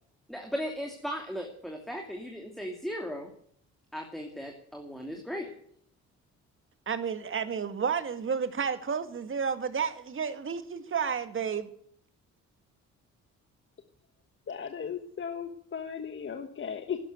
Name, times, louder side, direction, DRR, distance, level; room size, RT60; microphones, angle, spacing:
voice 1, 0.3-3.3 3.9-5.5, equal, ahead, 2.7 m, -37 dB
voice 2, 6.9-11.7, right 6 dB, 40° right, 1.9 m, -31 dB
voice 3, 14.5-17.0, left 7 dB, 40° left, 1.4 m, -36 dB
12.5 x 11.0 x 9.2 m
cardioid pair, 90°, 30 cm